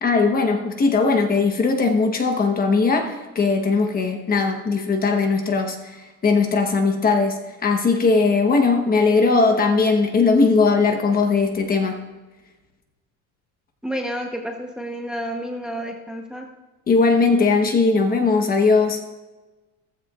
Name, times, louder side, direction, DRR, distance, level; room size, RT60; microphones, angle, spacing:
voice 1, 0.0-12.0 16.9-19.0, left 4 dB, 25° left, 5 dB, 1.0 m, -19 dB
voice 2, 13.8-16.5, equal, ahead, 1 dB, 0.9 m, -30 dB
14.5 x 13.5 x 2.4 m, 1.2 s
cardioid pair, 160°, 34 cm